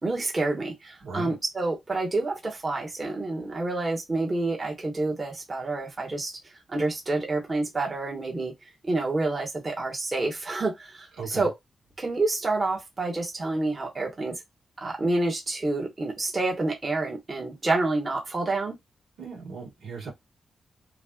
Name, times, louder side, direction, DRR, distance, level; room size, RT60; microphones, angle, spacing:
voice 1, 0.0-11.5 12.0-14.4 14.8-18.8, right 2 dB, 35° right, 1.3 m, -28 dB
voice 2, 1.0-1.4 11.2-11.5 19.2-20.1, right 5 dB, 85° right, 1.7 m, -37 dB
3.1 x 2.6 x 2.3 m
cardioid pair, 65°, 0 cm